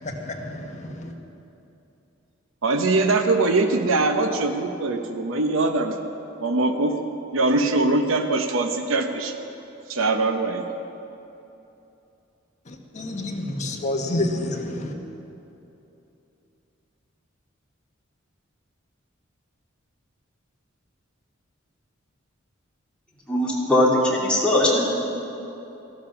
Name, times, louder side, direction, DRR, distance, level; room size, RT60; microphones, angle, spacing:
voice 1, 0.0-1.1 12.7-14.9, left 1 dB, 35° left, 2 dB, 1.4 m, -29 dB
voice 2, 2.6-6.0 6.4-7.0 7.3-9.3 9.9-10.7, right 2 dB, 70° right, 6 dB, 0.9 m, -22 dB
voice 3, 23.3-24.8, left 1 dB, 5° left, -5 dB, 2.7 m, -20 dB
14.5 x 13.5 x 5.8 m, 2.9 s
head